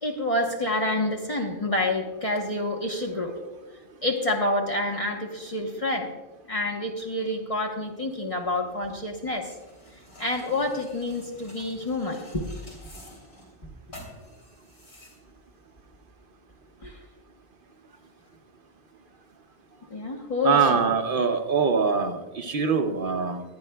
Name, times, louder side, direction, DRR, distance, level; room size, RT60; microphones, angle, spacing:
voice 1, 0.0-3.4 4.0-6.1 6.5-9.5 10.2-12.4 16.8-17.0 19.9-20.6, left 2 dB, 35° left, 0 dB, 1.1 m, -28 dB
sound 1, 8.5-16.1, left 1 dB, 70° left, 3.2 m, -50 dB
voice 2, 20.4-23.4, right 5 dB, 60° right, 6 dB, 0.8 m, -23 dB
20.0 x 11.0 x 2.2 m, 1.2 s
omnidirectional pair, 1.1 m